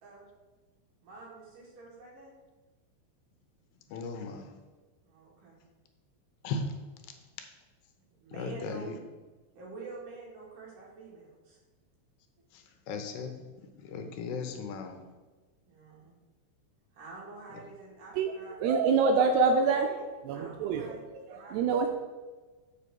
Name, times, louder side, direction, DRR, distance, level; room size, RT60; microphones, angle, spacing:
voice 1, 1.0-2.3 5.0-5.6 8.2-8.9 9.5-11.6 15.7-16.1 16.9-18.6 20.3-21.9, right 4 dB, 55° right, -4 dB, 3.1 m, -47 dB
voice 2, 3.9-4.6 6.4-6.8 7.0-7.1 8.3-9.0 12.5-15.0 17.5-17.6, left 4 dB, 75° left, 5 dB, 2.7 m, -37 dB
voice 3, 18.6-21.9, right 4 dB, 85° right, 4 dB, 2.5 m, -26 dB
7.6 x 5.1 x 6.9 m, 1.3 s
omnidirectional pair, 5.2 m